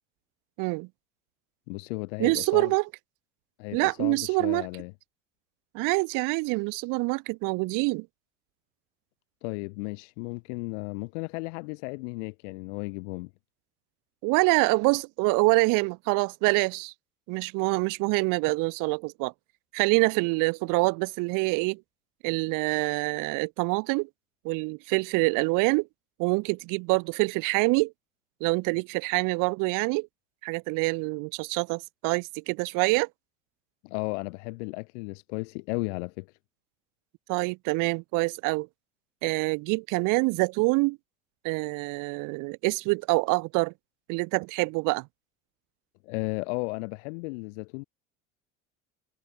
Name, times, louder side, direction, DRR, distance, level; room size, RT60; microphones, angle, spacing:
voice 1, 0.6-0.9 2.2-2.9 3.7-4.7 5.7-8.1 14.2-16.9 17.3-19.3 19.7-21.8 22.2-24.1 24.4-25.9 26.2-27.9 28.4-30.1 30.4-33.1 37.3-38.7 39.2-41.0 41.4-43.7 44.1-45.1, right 28 dB, 55° right, 0.6 m, -26 dB
voice 2, 1.7-2.7 3.6-4.9 9.4-13.3 33.8-36.3 46.0-47.8, left 30 dB, 70° left, 1.4 m, -34 dB
hypercardioid pair, 75°, 37 cm